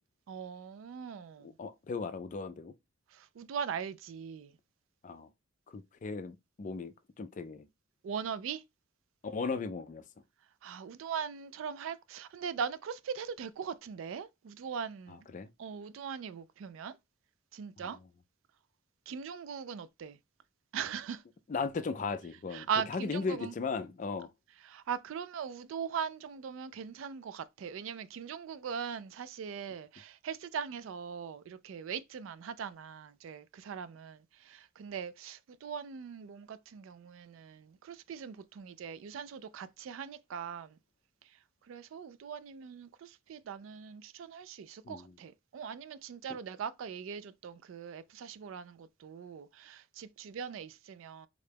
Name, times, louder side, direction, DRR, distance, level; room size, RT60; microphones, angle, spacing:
voice 1, 0.3-1.5 3.1-4.6 8.0-8.6 10.6-15.3 15.6-17.0 17.5-18.0 19.1-20.2 20.7-21.2 22.5-23.5 24.6-40.8 41.2-51.3, right 7 dB, 70° right, 0.3 m, -40 dB
voice 2, 1.4-2.7 5.0-5.3 5.7-7.7 9.2-10.0 15.3-15.5 17.8-17.9 21.5-24.3 44.8-45.1, left 4 dB, 40° left, 0.4 m, -37 dB
3.7 x 2.2 x 3.3 m
head